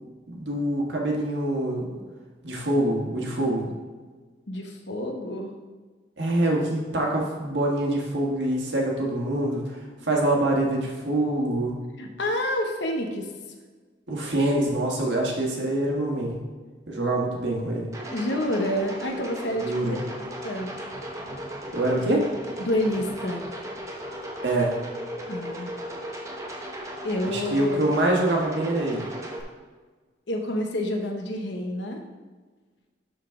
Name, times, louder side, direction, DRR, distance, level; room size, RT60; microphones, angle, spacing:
voice 1, 0.3-2.0 2.4-3.6 6.2-11.7 14.1-16.4 16.9-17.9 19.6-20.0 21.7-22.3 24.4-24.7 27.2-29.0, right 1 dB, 80° right, -1 dB, 1.5 m, -25 dB
voice 2, 4.5-5.5 12.0-13.3 18.1-20.0 20.4-20.7 22.6-23.4 25.3-25.7 27.0-27.8 30.3-32.0, left 1 dB, 75° left, 3 dB, 1.0 m, -28 dB
sound 1, 17.9-29.4, equal, 15° right, 0.7 m, -36 dB
11.5 x 4.0 x 3.7 m, 1.4 s
head